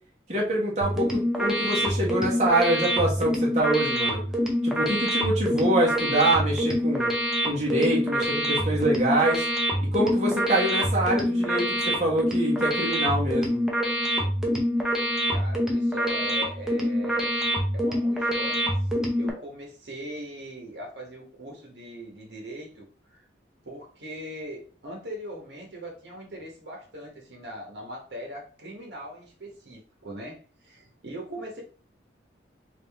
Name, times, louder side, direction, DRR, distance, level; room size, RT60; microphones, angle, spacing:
voice 1, 0.3-4.2 4.6-7.1 7.4-9.4 9.9-13.6, right 1 dB, 40° right, -3 dB, 1.3 m, -25 dB
sound 1, 0.8-19.3, equal, 5° right, 0.7 m, -26 dB
voice 2, 15.3-17.3 17.7-23.3 23.6-31.6, equal, 70° right, 0 dB, 1.2 m, -40 dB
3.7 x 2.7 x 3.5 m, 0.39 s
head